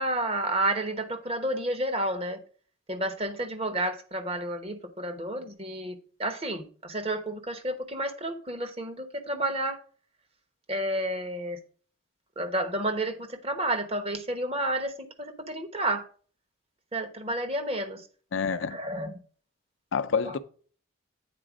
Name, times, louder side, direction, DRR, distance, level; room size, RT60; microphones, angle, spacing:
voice 1, 0.0-2.4 2.9-9.8 10.7-11.6 12.4-16.0 16.9-18.0 18.5-19.1 20.2-20.3, right 1 dB, 30° right, 1.0 m, -31 dB
voice 2, 18.3-18.8 19.9-20.4, left 5 dB, 70° left, 0.5 m, -27 dB
8.7 x 4.3 x 5.0 m
head